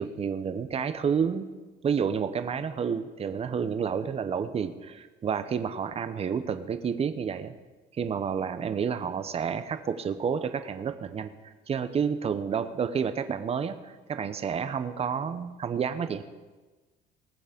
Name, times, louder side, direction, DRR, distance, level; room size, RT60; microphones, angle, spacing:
voice 1, 0.0-1.5 1.8-7.6 7.9-16.2, right 7 dB, 35° right, 10 dB, 0.9 m, -30 dB
20.0 x 7.3 x 5.2 m, 1.3 s
cardioid pair, 110°, 17 cm